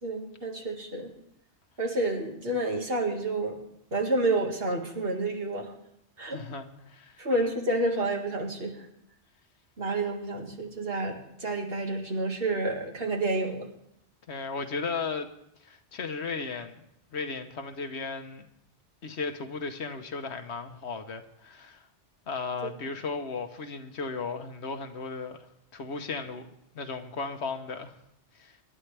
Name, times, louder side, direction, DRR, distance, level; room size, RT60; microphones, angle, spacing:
voice 1, 0.0-1.1 1.8-3.6 3.9-5.7 6.2-6.4 7.2-8.9 9.8-13.7, right 2 dB, 60° right, 1 dB, 2.2 m, -29 dB
voice 2, 6.2-7.2 14.3-15.3 15.6-16.8 17.1-18.5 19.0-21.9 22.3-25.5 25.7-28.0 28.3-28.6, left 4 dB, 75° left, 7 dB, 1.4 m, -35 dB
24.5 x 11.0 x 3.4 m, 0.76 s
omnidirectional pair, 1.1 m